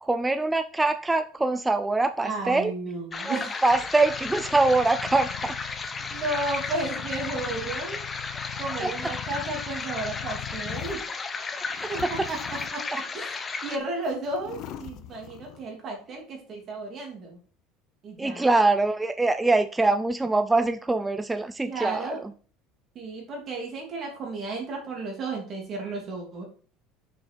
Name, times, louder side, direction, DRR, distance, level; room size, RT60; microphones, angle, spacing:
voice 1, 0.0-2.7 3.2-5.6 8.8-9.1 11.6-12.3 18.2-22.3, right 2 dB, 10° right, 0.4 m, -24 dB
voice 2, 2.2-3.5 6.1-8.0 8.5-11.0 11.9-12.4 12.7-17.4 18.0-18.5 21.7-22.2 22.9-26.4, right 2 dB, 35° right, 3.0 m, -33 dB
sound 1, 3.1-13.8, left 4 dB, 20° left, 0.8 m, -34 dB
sound 2, 3.7-11.1 11.7-13.1 13.7-13.8 14.1-15.7, left 12 dB, 50° left, 0.8 m, -41 dB
6.7 x 6.4 x 4.5 m
cardioid pair, 160°, 0 cm